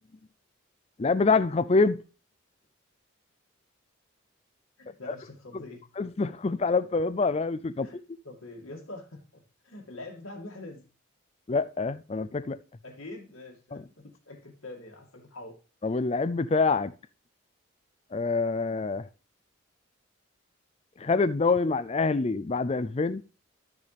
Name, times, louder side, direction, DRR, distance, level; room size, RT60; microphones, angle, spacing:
voice 1, 1.0-2.0 6.0-7.9 11.5-12.6 13.7-13.8 15.8-16.9 18.1-19.1 21.0-23.2, left 4 dB, 30° left, 0.4 m, -26 dB
voice 2, 4.8-5.8 7.8-8.0 8.2-10.8 12.8-15.6, left 2 dB, 85° left, 2.3 m, -44 dB
12.5 x 6.5 x 3.4 m
head